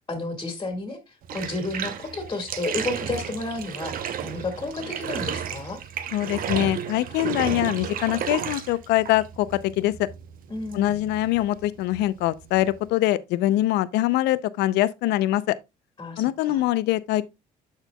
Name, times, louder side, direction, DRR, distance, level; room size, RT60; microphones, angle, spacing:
voice 1, 0.0-5.8 10.5-11.1 16.0-16.6, left 2 dB, 25° left, 1.8 m, -32 dB
Bathtub (filling or washing), 1.2-12.9, right 8 dB, 60° right, 0.8 m, -33 dB
voice 2, 6.1-9.9 10.7-15.6 16.2-17.3, left 15 dB, 85° left, 0.5 m, -23 dB
12.5 x 4.4 x 2.2 m
cardioid pair, 110°, 17 cm